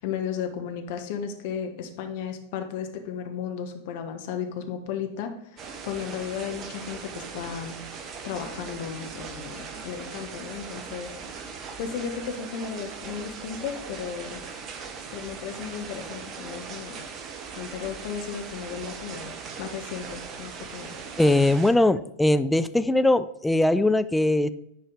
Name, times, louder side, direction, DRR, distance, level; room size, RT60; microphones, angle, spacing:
voice 1, 0.0-7.8 8.2-11.1 11.8-14.4 15.1-17.0 17.6-19.3 19.6-21.0, left 7 dB, 50° left, 5 dB, 1.1 m, -34 dB
sound 1, 5.6-21.7, right 5 dB, 30° right, 0.9 m, -39 dB
voice 2, 21.2-24.5, left 1 dB, 5° left, 12 dB, 0.4 m, -21 dB
10.5 x 4.8 x 3.7 m, 0.79 s
figure-of-eight pair, 90°, 0 cm